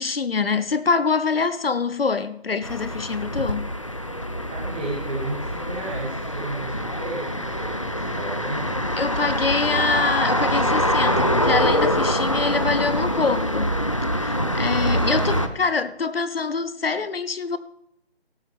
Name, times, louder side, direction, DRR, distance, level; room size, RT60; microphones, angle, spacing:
voice 1, 0.0-3.7 9.0-13.7 14.2-17.6, left 4 dB, 60° left, 0.8 m, -25 dB
sound 1, 2.6-15.5, equal, 30° left, 0.5 m, -24 dB
voice 2, 4.5-8.8 14.8-15.5, right 2 dB, 10° right, 1.3 m, -33 dB
17.5 x 9.5 x 3.5 m
figure-of-eight pair, 170°, 32 cm